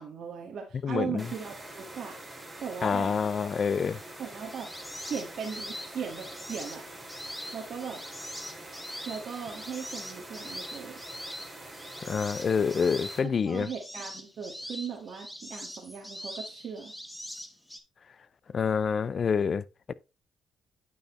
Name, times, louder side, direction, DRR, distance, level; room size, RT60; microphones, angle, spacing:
voice 1, 0.0-2.2 2.6-3.1 4.2-4.7 5.0-6.8 7.5-8.0 9.0-11.0 13.2-16.9, right 6 dB, 60° right, 1.6 m, -38 dB
voice 2, 0.8-1.3 2.8-4.0 12.0-13.7 18.5-19.9, left 6 dB, 45° left, 0.4 m, -27 dB
sound 1, 1.2-13.2, right 1 dB, 15° right, 2.2 m, -45 dB
sound 2, 4.4-17.8, equal, 5° left, 1.0 m, -43 dB
9.0 x 5.4 x 3.0 m
cardioid pair, 90°, 0 cm